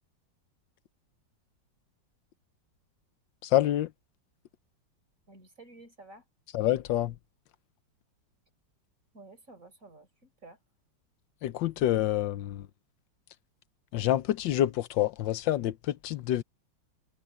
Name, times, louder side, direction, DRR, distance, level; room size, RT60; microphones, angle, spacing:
voice 1, 3.4-3.9 6.5-7.1 11.4-12.7 13.9-16.4, left 13 dB, 85° left, 1.4 m, -27 dB
voice 2, 5.3-6.2 9.1-10.6, right 2 dB, 45° right, 4.8 m, -52 dB
omnidirectional pair, 2.0 m